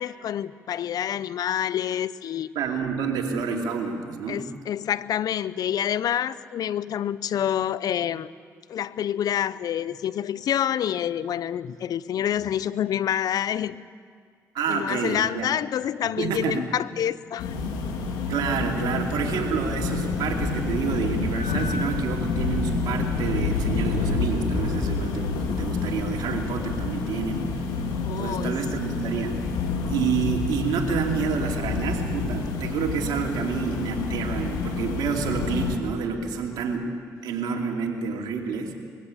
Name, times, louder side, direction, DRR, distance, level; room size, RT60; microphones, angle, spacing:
voice 1, 0.0-2.5 4.3-8.3 8.7-13.8 14.7-17.5 28.0-28.5, left 10 dB, 65° left, 18 dB, 0.6 m, -27 dB
voice 2, 2.5-4.4 14.5-15.5 16.2-16.6 18.2-27.5 28.2-29.4 29.9-36.9 37.2-38.8, right 6 dB, 75° right, 2 dB, 2.7 m, -28 dB
sound 1, 17.4-35.8, left 4 dB, 90° left, 2.2 m, -28 dB
22.0 x 15.5 x 8.4 m, 2.1 s
supercardioid pair, 65°, 7 cm